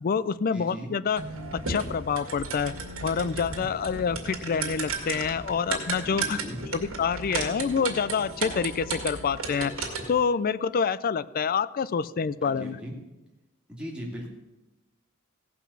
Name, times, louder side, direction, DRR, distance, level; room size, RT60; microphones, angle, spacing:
voice 1, 0.0-1.2 1.5-2.7 3.0-6.4 6.7-12.8, left 6 dB, 45° left, 18 dB, 0.4 m, -27 dB
voice 2, 0.5-0.9 6.0-6.6 12.4-12.9 13.7-14.3, equal, 5° right, -2 dB, 2.5 m, -38 dB
sound 1, 1.2-10.2, right 4 dB, 85° right, 2.2 m, -34 dB
Bowed string instrument, 4.4-9.1, left 2 dB, 60° left, 1.7 m, -50 dB
16.5 x 5.8 x 7.1 m, 1.0 s
head